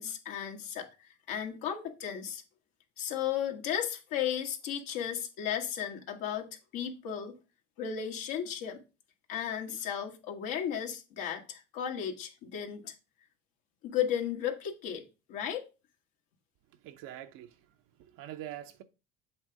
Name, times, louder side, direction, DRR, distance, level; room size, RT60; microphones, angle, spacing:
voice 1, 0.0-2.4 3.0-7.4 7.8-8.8 9.3-12.9 13.8-15.7, left 9 dB, 65° left, 1.5 m, -35 dB
voice 2, 16.7-18.8, right 12 dB, 65° right, 0.9 m, -45 dB
7.8 x 3.4 x 4.8 m
hypercardioid pair, 70°, 36 cm